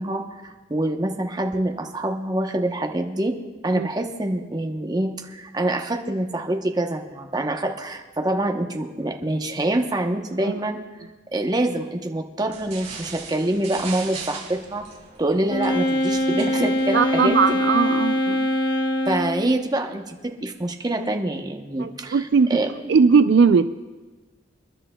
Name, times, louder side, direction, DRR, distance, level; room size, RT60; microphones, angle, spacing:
voice 1, 0.0-3.3 3.6-10.8 11.3-14.8 15.2-17.4 19.1-22.7, right 1 dB, 20° right, 3 dB, 0.8 m, -25 dB
sound 1, 12.5-17.8, right 5 dB, 35° right, 5.4 m, -40 dB
Wind instrument woodwind instrument, 15.5-19.5, left 1 dB, 60° left, 1.0 m, -23 dB
voice 2, 16.9-18.5 21.8-22.6 22.9-23.7, right 5 dB, 70° right, 11 dB, 0.3 m, -19 dB
29.0 x 11.0 x 2.2 m, 1.2 s
head